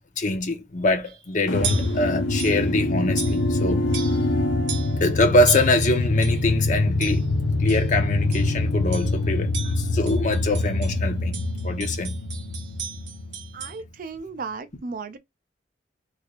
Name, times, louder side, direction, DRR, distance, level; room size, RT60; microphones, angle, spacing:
voice 1, 0.2-3.8 5.0-7.2 7.6-12.1, left 2 dB, 45° left, 0.8 m, -24 dB
sound 1, 1.0-1.2 1.6-2.0 2.4-2.7 3.2-3.6 3.9-4.3 4.7-5.0 5.5-6.5 7.0-7.3 7.7-7.9 8.3-8.6 8.9-9.2 9.5-11.0 11.3-13.8, right 7 dB, 65° right, 1.0 m, -36 dB
sound 2, 1.5-13.7, left 2 dB, 90° left, 0.8 m, -24 dB
voice 2, 13.5-15.2, right 4 dB, 45° right, 0.4 m, -35 dB
3.3 x 3.2 x 2.4 m
head